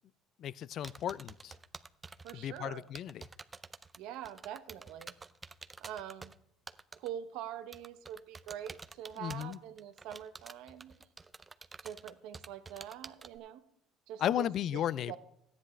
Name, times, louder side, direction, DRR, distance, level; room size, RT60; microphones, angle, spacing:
voice 1, 0.4-1.5 2.3-3.3 9.2-9.6 14.2-15.1, left 11 dB, 55° left, 21 dB, 0.4 m, -34 dB
sound 1, 0.8-2.3 2.9-6.3 6.7-7.1 7.7-13.4, right 3 dB, 20° right, 0.5 m, -48 dB
voice 2, 2.2-2.8 4.0-5.1 5.8-6.3 7.0-11.0 11.8-13.6 14.1-14.8 15.1-15.2, right 10 dB, 75° right, 10 dB, 0.9 m, -44 dB
14.0 x 10.0 x 3.2 m, 0.74 s
supercardioid pair, 85°, 0 cm